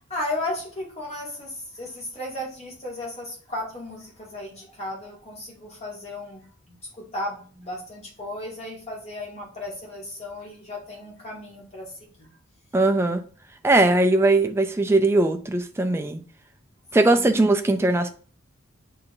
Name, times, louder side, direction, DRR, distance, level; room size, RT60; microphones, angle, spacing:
voice 1, 0.1-11.9 12.2-12.4 17.0-17.3, left 1 dB, 30° left, 1.8 m, -35 dB
voice 2, 12.7-13.2 13.6-16.2 16.9-18.1, right 2 dB, 10° right, 0.4 m, -20 dB
7.1 x 2.8 x 2.6 m
head